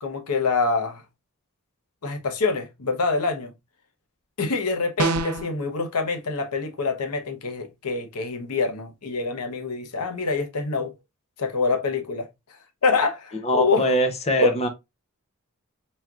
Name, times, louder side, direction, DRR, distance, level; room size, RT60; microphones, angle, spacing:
voice 1, 0.0-1.0 2.0-3.5 4.4-10.9 11.4-12.3 12.8-13.9 14.4-14.5, left 4 dB, 90° left, 0.8 m, -25 dB
sound 1, 5.0-5.5, right 3 dB, 85° right, 0.5 m, -24 dB
voice 2, 13.4-14.7, equal, 30° left, 0.7 m, -22 dB
4.4 x 3.5 x 2.3 m
head